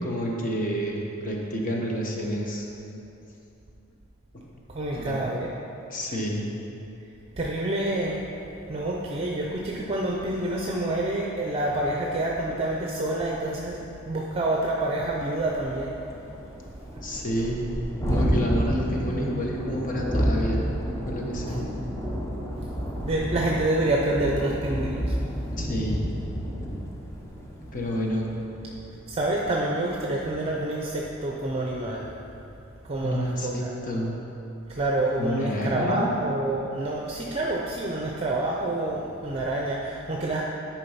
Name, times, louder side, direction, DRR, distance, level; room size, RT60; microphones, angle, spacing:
voice 1, 0.0-2.6 5.0-5.2 5.9-6.4 17.0-17.6 18.0-20.7 21.0-21.7 25.6-26.1 27.7-28.3 33.0-34.1 35.2-36.1, equal, 40° left, -2 dB, 1.2 m, -29 dB
voice 2, 4.7-5.5 7.4-8.3 8.7-15.9 21.5-21.6 23.0-25.2 29.1-32.1 32.8-33.7 34.7-40.4, right 1 dB, 30° right, -2 dB, 0.6 m, -27 dB
Thunderstorm, 14.5-14.6 15.0-15.1 15.4-29.0, equal, 15° left, 0.7 m, -30 dB
10.0 x 4.6 x 5.7 m, 2.9 s
head